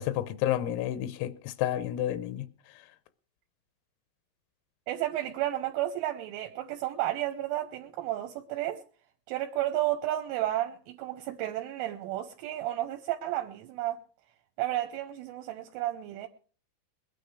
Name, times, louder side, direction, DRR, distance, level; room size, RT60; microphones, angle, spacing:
voice 1, 0.0-2.5, left 12 dB, 85° left, 3.4 m, -30 dB
voice 2, 4.9-8.8 9.3-14.0 14.6-16.3, right 14 dB, 80° right, 3.3 m, -32 dB
21.5 x 9.1 x 4.8 m
omnidirectional pair, 5.8 m